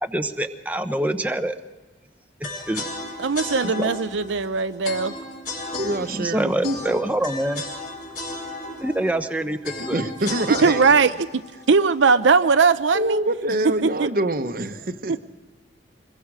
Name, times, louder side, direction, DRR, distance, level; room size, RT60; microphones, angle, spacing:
voice 1, 0.0-1.6 2.7-2.9 3.6-3.9 6.1-7.6 8.8-10.0, right 1 dB, 10° right, 7 dB, 0.8 m, -25 dB
sound 1, 2.4-12.5, left 2 dB, 50° left, 5.3 m, -34 dB
voice 2, 3.2-5.1 10.6-11.4 11.7-13.2 13.8-14.1 15.1-15.2, right 5 dB, 85° right, 11 dB, 0.6 m, -19 dB
voice 3, 5.8-7.0 9.9-10.8 12.9-15.1, right 1 dB, 50° right, 9 dB, 1.0 m, -25 dB
26.0 x 21.5 x 4.9 m, 1.2 s
head